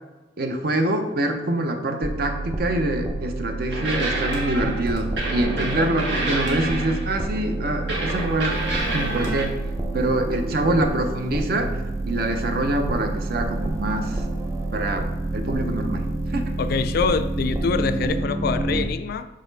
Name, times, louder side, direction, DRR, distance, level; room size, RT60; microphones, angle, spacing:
voice 1, 0.4-8.6 8.9-9.5 9.9-11.7 12.1-14.2 14.7-16.4, right 1 dB, 55° right, 5 dB, 0.7 m, -25 dB
sound 1, 2.0-18.9, right 2 dB, 15° right, 0.5 m, -28 dB
sound 2, 3.7-7.2 7.9-9.4, right 2 dB, 75° right, 1.7 m, -28 dB
voice 2, 16.6-19.3, left 5 dB, 55° left, 11 dB, 0.3 m, -25 dB
6.2 x 4.1 x 4.0 m, 1.1 s
head